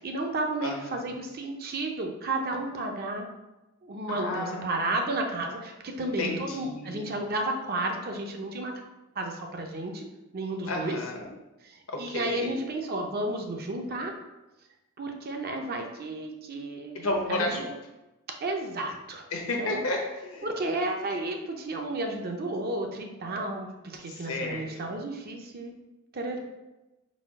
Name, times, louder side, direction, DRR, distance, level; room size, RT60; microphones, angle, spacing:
voice 1, 0.0-3.2 3.8-8.7 9.1-10.0 10.3-11.0 11.6-14.1 15.0-17.7 18.4-19.3 19.6-19.8 20.4-25.7 26.1-26.4, right 2 dB, 50° right, 3 dB, 0.6 m, -32 dB
voice 2, 0.6-1.0 4.1-4.9 6.2-7.1 10.7-11.3 11.9-12.6 16.9-17.7 19.3-20.5 24.1-24.9, left 2 dB, 75° left, 1 dB, 0.9 m, -32 dB
4.1 x 2.4 x 4.7 m, 1.0 s
head